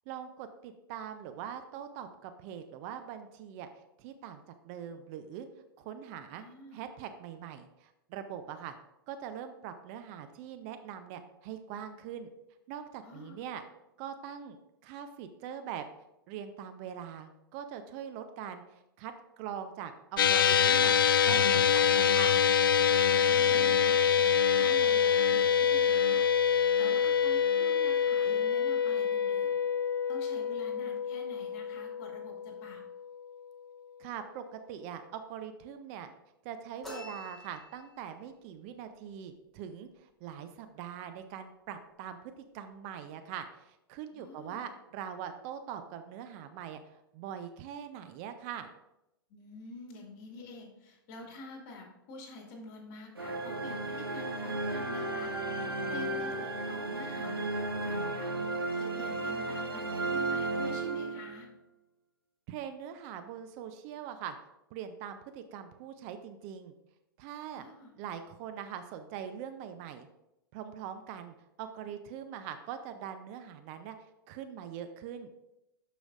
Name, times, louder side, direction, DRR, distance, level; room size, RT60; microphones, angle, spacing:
voice 1, 0.1-3.7 4.0-5.5 5.8-6.4 6.7-8.7 9.1-12.3 12.7-13.6 14.0-14.6 14.8-15.8 16.3-18.6 19.0-20.9 21.2-22.4 34.0-36.1 36.4-48.7 62.5-64.3 64.7-66.7 67.2-67.7 68.0-70.1 70.5-74.0 74.3-75.3, right 9 dB, 40° right, 8 dB, 0.5 m, -42 dB
voice 2, 6.3-6.8 13.0-13.4 23.2-26.2 26.8-29.6 30.1-32.8 44.1-44.7 49.3-58.3 58.8-61.5 67.5-67.9, left 2 dB, 40° left, 1 dB, 2.2 m, -48 dB
sound 1, 20.2-32.7, left 7 dB, 70° left, 0.4 m, -25 dB
sound 2, 36.8-38.1, left 2 dB, ahead, 2.2 m, -46 dB
sound 3, 53.2-61.5, right 2 dB, 90° right, 1.2 m, -34 dB
12.0 x 5.0 x 2.5 m, 0.88 s
figure-of-eight pair, 105°, 12 cm